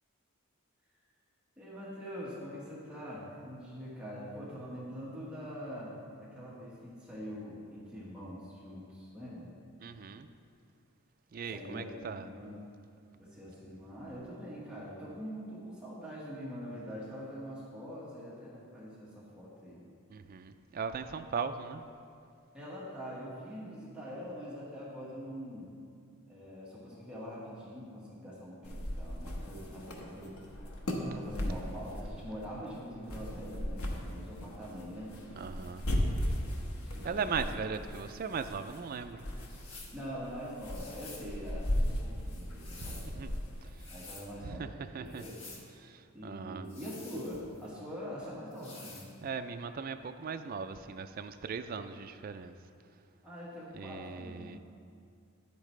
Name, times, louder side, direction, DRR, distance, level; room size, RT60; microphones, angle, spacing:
voice 1, 1.6-9.5 11.5-11.9 12.2-12.6 13.2-19.9 22.5-25.7 26.3-30.4 31.0-35.3 36.8-37.5 39.9-43.3 43.9-45.4 46.1-49.1 53.2-54.6, equal, 5° right, -8 dB, 1.4 m, -44 dB
voice 2, 9.8-10.3 11.3-12.3 20.1-21.8 35.4-35.8 37.0-39.2 42.8-43.3 44.4-44.7 44.9-45.2 45.8-46.7 49.2-52.5 53.7-54.6, right 5 dB, 40° right, 8 dB, 0.3 m, -38 dB
sound 1, 28.6-43.8, equal, 80° left, 1.0 m, -37 dB
sound 2, 39.4-40.0 40.7-41.3 42.3-43.1 43.7-44.3 45.1-45.7 46.6-47.7 48.5-49.1, left 3 dB, 60° left, 1.3 m, -50 dB
10.0 x 8.5 x 3.2 m, 2.4 s
head